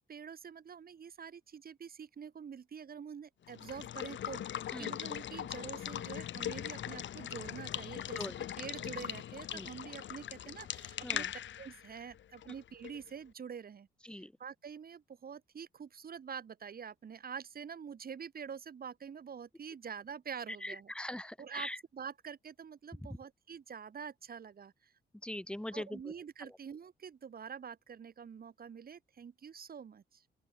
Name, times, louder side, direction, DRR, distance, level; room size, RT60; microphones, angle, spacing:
voice 1, 0.0-8.2 8.6-11.3 11.6-13.9 14.1-20.9 21.4-24.9 25.7-30.2, right 7 dB, 50° right, 7.1 m, -46 dB
Water / Water tap faucet / Liquid, 3.5-13.1, left 10 dB, 70° left, 6.2 m, -40 dB
voice 2, 20.6-21.8 25.2-26.0, left 1 dB, 5° left, 2.8 m, -41 dB
open air
cardioid pair, 90°, 20 cm